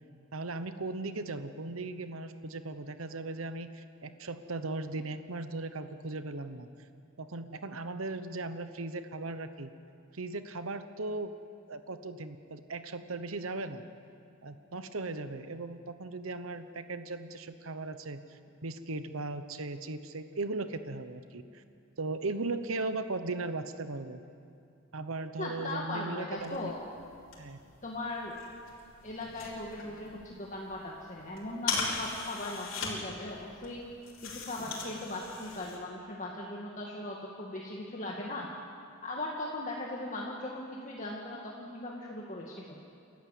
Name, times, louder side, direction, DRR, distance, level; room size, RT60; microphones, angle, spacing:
voice 1, 0.3-6.7 7.2-9.7 10.1-11.3 11.7-13.8 14.4-21.6 22.0-24.2 24.9-26.7 27.4-27.6, right 3 dB, 75° right, 10 dB, 1.0 m, -37 dB
voice 2, 25.4-26.8 27.8-28.4 29.0-33.8 34.2-38.5 39.0-42.8, left 2 dB, 35° left, -2 dB, 2.0 m, -39 dB
sound 1, 26.4-35.8, left 4 dB, 65° left, 4.8 m, -40 dB
29.5 x 14.0 x 8.4 m, 2.5 s
head